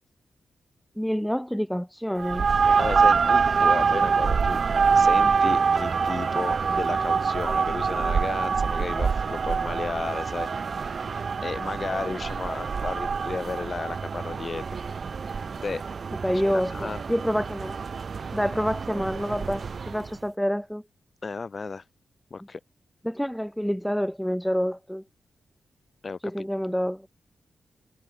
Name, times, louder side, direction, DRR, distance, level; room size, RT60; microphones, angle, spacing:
voice 1, 1.0-2.5 12.0-12.1 16.2-17.8 18.3-20.8 23.0-25.0 26.2-27.1, equal, ahead, 3.0 m, -27 dB
sound 1, 2.2-20.1, right 5 dB, 55° right, 1.2 m, -25 dB
voice 2, 2.8-4.6 4.9-10.5 10.8-11.0 11.4-14.6 15.6-15.8 16.4-17.0 21.2-21.8 22.3-22.6 26.0-26.5, left 4 dB, 40° left, 5.8 m, -33 dB
cardioid pair, 85°, 0 cm